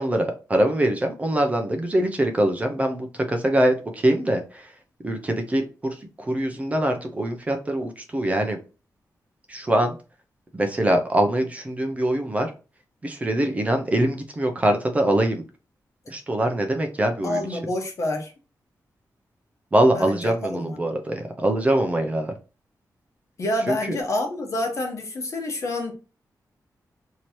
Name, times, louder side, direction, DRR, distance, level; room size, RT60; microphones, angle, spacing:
voice 1, 0.0-4.7 5.0-8.6 9.5-10.0 10.5-12.5 13.0-15.4 16.1-17.6 19.7-22.3 23.7-23.8, right 1 dB, 20° right, 4 dB, 0.5 m, -23 dB
voice 2, 17.2-18.3 19.9-20.8 23.4-25.9, left 1 dB, 50° left, 2 dB, 1.1 m, -28 dB
3.1 x 2.8 x 4.2 m, 0.32 s
wide cardioid pair, 180°, 7 cm